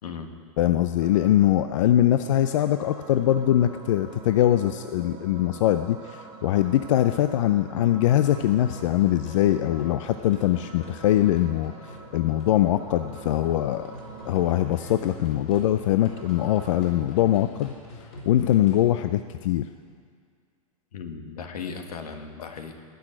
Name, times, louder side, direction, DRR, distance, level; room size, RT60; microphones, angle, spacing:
voice 1, 0.6-13.9 14.3-17.7 18.0-19.7, left 12 dB, 55° left, 10 dB, 0.5 m, -22 dB
sound 1, 1.0-17.0, right 5 dB, 25° right, 1.6 m, -46 dB
sound 2, 8.0-18.9, left 3 dB, 35° left, 4.3 m, -45 dB
voice 2, 20.9-22.8, left 5 dB, 80° left, 5 dB, 1.7 m, -37 dB
18.0 x 6.3 x 8.9 m, 2.1 s
hypercardioid pair, 145°, 19 cm